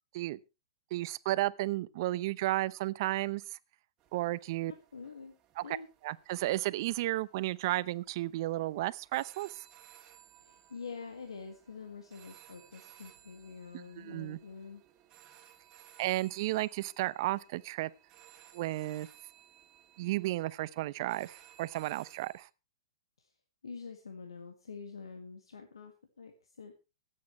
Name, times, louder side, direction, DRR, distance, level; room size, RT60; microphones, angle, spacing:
voice 1, 0.9-3.6 4.1-4.7 5.6-5.8 6.0-9.7 13.7-14.4 16.0-17.9 18.5-19.1 20.0-22.5, right 17 dB, 50° right, 0.7 m, -33 dB
sound 1, 4.0-22.4, right 11 dB, 30° right, 2.3 m, -60 dB
voice 2, 4.7-5.4 5.6-5.9 10.4-14.8 23.2-23.3 23.6-26.7, left 5 dB, 90° left, 1.8 m, -46 dB
24.5 x 8.6 x 3.1 m
hypercardioid pair, 125°, 3 cm